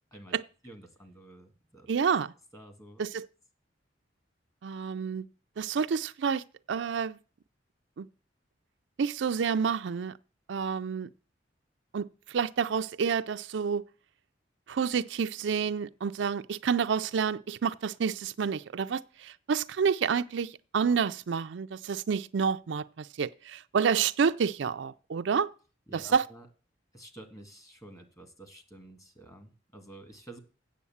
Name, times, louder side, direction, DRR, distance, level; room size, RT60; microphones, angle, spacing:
voice 1, 0.6-1.9 2.5-3.0 25.9-26.5 26.9-30.4, right 1 dB, 20° left, 1.8 m, -50 dB
voice 2, 1.9-2.3 3.0-3.3 4.6-5.2 5.6-7.2 8.0-8.1 9.0-10.1 10.5-11.1 11.9-13.8 14.7-25.5 26.1-26.2, right 6 dB, 75° right, 0.4 m, -29 dB
8.4 x 7.2 x 7.1 m
head